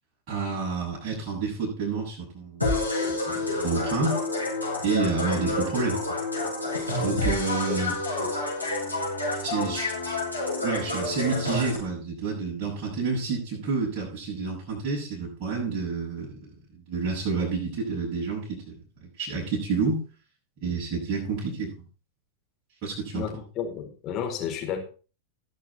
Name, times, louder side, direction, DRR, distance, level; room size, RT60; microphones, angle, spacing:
voice 1, 0.3-2.7 3.0-4.2 4.8-6.0 7.0-8.0 9.4-9.9 10.6-20.0 20.6-21.7 22.8-23.3, right 4 dB, 40° right, -5 dB, 7.1 m, -29 dB
sound 1, 2.6-11.8, left 2 dB, 90° left, 5.4 m, -28 dB
voice 2, 23.1-24.8, left 8 dB, 35° left, 2 dB, 4.2 m, -32 dB
20.0 x 6.8 x 4.2 m, 0.36 s
figure-of-eight pair, 90°, 0 cm